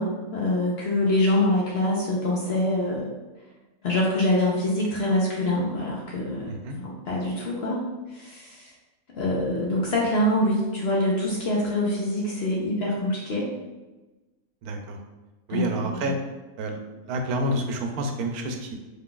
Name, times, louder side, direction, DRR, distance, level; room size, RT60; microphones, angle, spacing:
voice 1, 0.0-3.1 3.8-8.7 9.1-13.5 15.5-16.1, left 1 dB, 55° left, -3 dB, 0.7 m, -25 dB
voice 2, 14.6-15.0 15.5-16.2 16.6-16.8 17.1-18.7, right 1 dB, 85° right, 4 dB, 1.1 m, -28 dB
3.3 x 2.4 x 3.8 m, 1.1 s
omnidirectional pair, 1.5 m